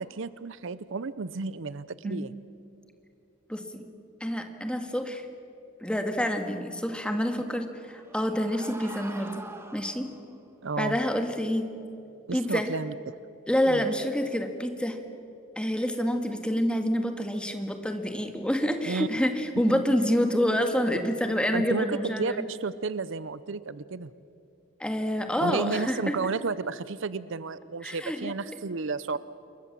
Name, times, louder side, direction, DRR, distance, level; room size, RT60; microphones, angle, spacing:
voice 1, 0.0-2.3 10.6-11.0 12.3-13.2 13.7-13.9 18.9-19.1 19.7-19.8 21.5-24.1 25.4-29.2, right 4 dB, 60° right, 16 dB, 0.6 m, -32 dB
voice 2, 3.5-3.8 4.2-5.3 5.8-9.4 9.7-10.1 10.8-11.7 12.3-12.7 13.5-15.0 15.6-22.4 24.8-26.3 27.8-28.3, equal, 5° left, 5 dB, 1.8 m, -27 dB
sound 1, 7.4-10.4, right 2 dB, 10° right, 1.5 m, -45 dB
27.5 x 23.0 x 7.5 m, 2.8 s
head